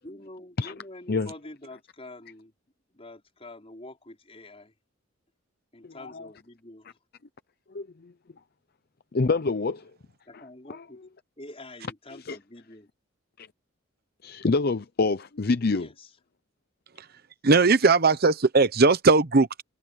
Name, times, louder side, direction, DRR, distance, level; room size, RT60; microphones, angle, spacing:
voice 1, 0.0-2.5 2.9-4.7 5.7-7.0 10.3-11.0 11.4-12.9 15.7-16.1, left 1 dB, 30° left, 4.7 m, -46 dB
voice 2, 5.8-6.3 7.7-8.1 9.1-9.9 10.3-10.4 10.7-10.9 12.1-12.4 13.4-13.5 14.2-15.9, left 3 dB, 45° left, 0.6 m, -27 dB
voice 3, 17.4-19.6, right 3 dB, 45° right, 0.9 m, -19 dB
head